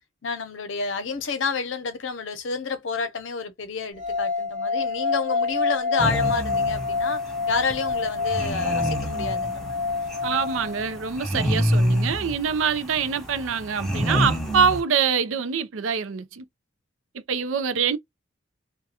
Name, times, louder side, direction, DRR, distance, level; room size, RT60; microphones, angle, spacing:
voice 1, 0.2-7.2 7.5-9.9, left 4 dB, 75° left, 0.6 m, -29 dB
sound 1, 4.0-11.1, left 4 dB, 40° right, 0.6 m, -27 dB
sound 2, 6.0-14.8, equal, ahead, 0.6 m, -28 dB
voice 2, 10.2-16.4 17.1-18.0, right 6 dB, 90° right, 0.5 m, -25 dB
2.4 x 2.2 x 2.7 m
head